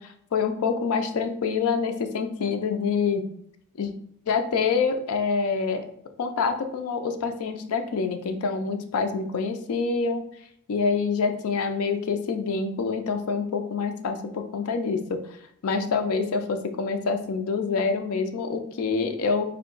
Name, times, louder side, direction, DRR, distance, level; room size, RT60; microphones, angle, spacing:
voice 1, 0.0-3.3 3.8-3.9 4.3-5.9 6.2-10.2 10.7-15.2 15.6-19.4, left 5 dB, 80° left, 6 dB, 0.4 m, -26 dB
3.5 x 2.2 x 3.8 m, 0.67 s
head